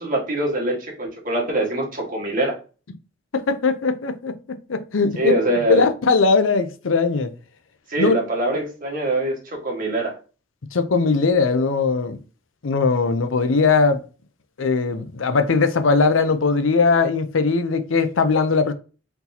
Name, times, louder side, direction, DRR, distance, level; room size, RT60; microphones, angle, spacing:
voice 1, 0.0-2.6 5.1-5.8 7.9-10.2, right 1 dB, 45° right, 1.6 m, -23 dB
voice 2, 3.3-4.3 4.7-5.3 5.7-7.3 8.0-8.2 10.7-12.2 12.6-14.0 14.6-18.7, left 4 dB, 85° left, 0.6 m, -19 dB
4.4 x 4.0 x 2.8 m
head